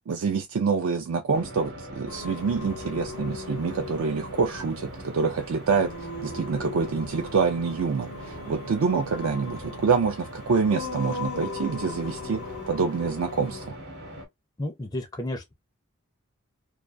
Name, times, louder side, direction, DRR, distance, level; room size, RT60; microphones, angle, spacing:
voice 1, 0.1-13.8, right 5 dB, 65° right, 0.4 m, -26 dB
sound 1, 1.3-14.3, right 1 dB, 45° right, 0.9 m, -41 dB
Singing, 2.1-13.7, left 4 dB, 80° left, 0.6 m, -39 dB
voice 2, 14.6-15.5, left 1 dB, 15° left, 0.4 m, -32 dB
2.3 x 2.2 x 2.4 m
head